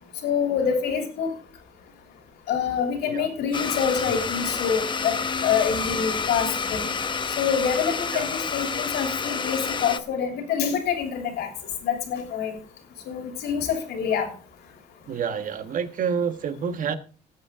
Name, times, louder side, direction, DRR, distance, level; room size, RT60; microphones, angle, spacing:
voice 1, 0.2-1.3 2.5-6.9 7.4-11.5 11.8-12.5 13.1-14.3, left 7 dB, 75° left, 4 dB, 3.2 m, -26 dB
Domestic sounds home sounds, 3.5-10.0, left 5 dB, 30° left, 0.9 m, -29 dB
voice 2, 15.1-16.9, right 7 dB, 50° right, 9 dB, 1.4 m, -28 dB
18.5 x 7.6 x 3.7 m, 0.38 s
cardioid pair, 110°, 17 cm